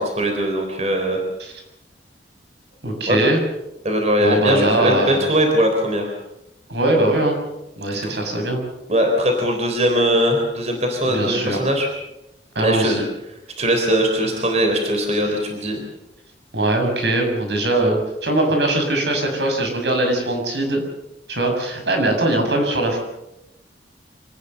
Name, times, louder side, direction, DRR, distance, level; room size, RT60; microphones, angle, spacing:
voice 1, 0.0-1.2 3.1-3.2 3.8-6.1 8.0-8.1 8.9-11.9 12.6-13.0 13.6-15.8, equal, 40° right, 3 dB, 3.8 m, -20 dB
voice 2, 2.8-3.4 4.2-5.2 6.7-7.4 7.8-8.6 11.0-11.6 12.5-13.0 16.5-20.8 21.3-23.0, right 1 dB, 75° right, 4 dB, 6.9 m, -21 dB
26.0 x 19.0 x 6.9 m, 0.90 s
head